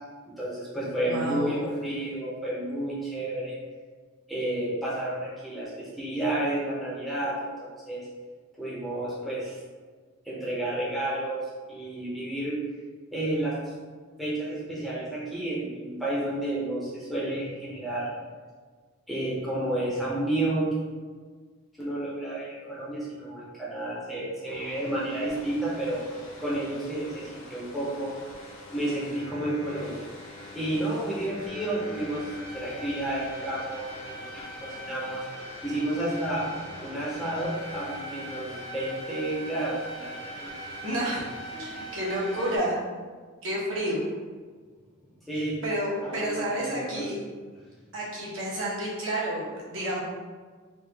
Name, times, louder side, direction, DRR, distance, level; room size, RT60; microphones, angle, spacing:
voice 1, 0.4-3.6 4.3-8.1 8.6-9.6 10.2-12.6 13.1-13.7 14.2-18.1 19.1-20.7 21.8-26.0 26.4-28.2 28.7-30.0 30.5-35.3 35.6-36.4 36.8-40.5 45.3-45.6 46.0-47.1, right 1 dB, ahead, -8 dB, 0.6 m, -31 dB
voice 2, 1.1-1.6 40.8-41.2 41.5-42.8 43.4-44.0 45.3-47.1 47.9-50.0, right 1 dB, 70° right, -6 dB, 1.0 m, -30 dB
sound 1, 24.5-42.6, equal, 65° left, 0.7 m, -42 dB
3.2 x 2.3 x 3.4 m, 1.5 s
head